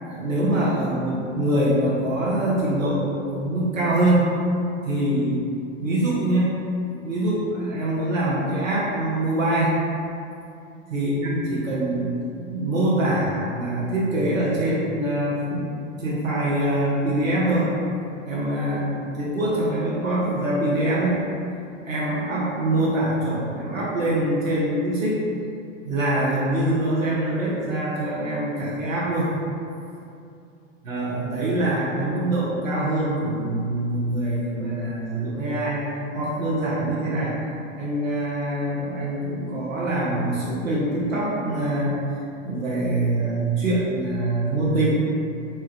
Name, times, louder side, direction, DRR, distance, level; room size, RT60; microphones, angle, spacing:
voice 1, 0.0-4.3 4.8-5.5 5.8-6.6 7.0-9.7 10.9-12.2 12.5-17.8 18.3-21.2 21.8-25.2 25.8-29.3 30.8-35.8 36.1-37.4 37.7-42.0 42.4-44.9, right 1 dB, 85° right, -7 dB, 0.7 m, -24 dB
4.2 x 2.2 x 2.2 m, 2.6 s
figure-of-eight pair, 100°, 38 cm